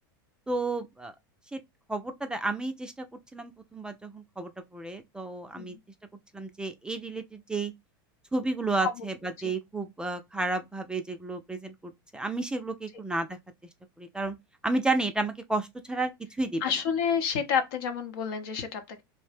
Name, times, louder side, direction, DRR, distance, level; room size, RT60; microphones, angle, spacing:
voice 1, 0.5-1.1 1.5-1.6 1.9-3.1 3.3-5.8 6.3-7.7 8.3-13.4 14.0-14.3 14.6-16.1 16.4-16.6, right 2 dB, 5° right, 0.3 m, -31 dB
voice 2, 16.6-19.0, left 7 dB, 70° left, 0.8 m, -29 dB
2.7 x 2.1 x 3.3 m
supercardioid pair, 115°, 12 cm